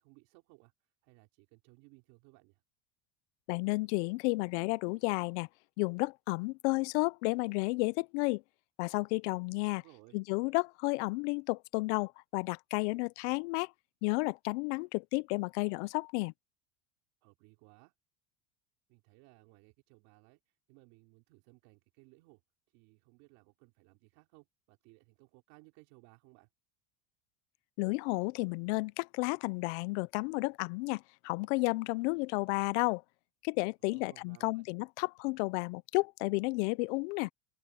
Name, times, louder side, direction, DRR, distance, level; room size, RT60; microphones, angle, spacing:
voice 1, 0.0-2.6 9.8-10.2 17.2-17.9 18.9-22.4 22.7-26.5 33.8-34.7, right 26 dB, 60° right, 4.7 m, -61 dB
voice 2, 3.5-5.5 5.8-8.4 8.8-9.8 10.1-13.7 14.0-16.3 27.8-33.0 33.4-37.3, left 26 dB, 65° left, 0.5 m, -32 dB
open air
cardioid pair, 155°, 37 cm